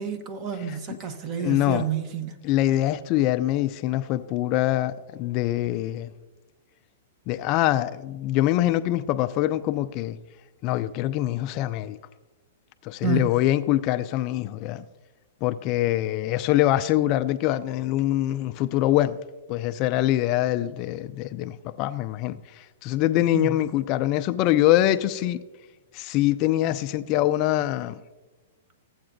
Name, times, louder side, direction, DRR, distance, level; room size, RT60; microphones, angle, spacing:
voice 1, 0.0-2.4 13.0-13.4 23.3-23.5, right 7 dB, 30° right, 0.8 m, -29 dB
voice 2, 1.4-1.8 2.4-6.1 7.3-10.2 10.6-12.0 12.8-14.8 15.4-19.2 19.5-25.4 25.9-28.0, left 14 dB, 40° left, 0.3 m, -24 dB
15.0 x 7.8 x 2.6 m
hypercardioid pair, 140°, 0 cm